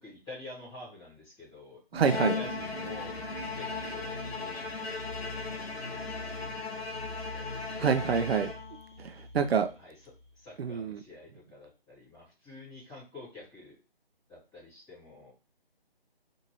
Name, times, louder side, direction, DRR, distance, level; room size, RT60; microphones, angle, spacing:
voice 1, 0.0-3.1 3.5-6.8 7.1-7.4 9.4-9.9 10.3-13.8 14.3-15.3, left 2 dB, 5° left, -13 dB, 1.4 m, -49 dB
sound 1, 1.9-10.5, left 1 dB, 30° left, 0.4 m, -44 dB
voice 2, 1.9-2.4 7.8-8.5 9.0-9.7 10.6-11.0, right 6 dB, 80° right, 8 dB, 0.5 m, -27 dB
Bowed string instrument, 2.0-9.0, left 4 dB, 85° left, 0.9 m, -37 dB
2.7 x 2.6 x 2.9 m, 0.31 s
hypercardioid pair, 170°, 30 cm